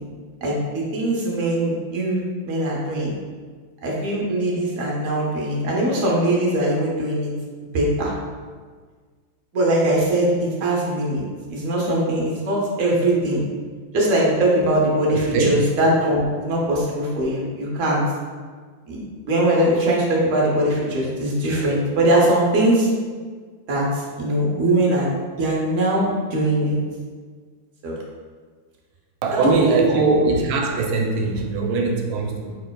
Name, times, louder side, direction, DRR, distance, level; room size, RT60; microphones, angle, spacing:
voice 1, 0.4-3.1 3.8-7.3 7.7-8.1 9.5-11.2 11.5-13.4 13.9-18.0 18.9-22.9 23.7-26.8 27.8-28.0 29.3-29.5 29.9-30.2, right 1 dB, 60° right, -3 dB, 0.8 m, -21 dB
voice 2, 15.1-15.5 29.2-32.6, right 3 dB, 85° right, 2 dB, 1.4 m, -21 dB
4.8 x 4.4 x 2.2 m, 1.5 s
omnidirectional pair, 2.3 m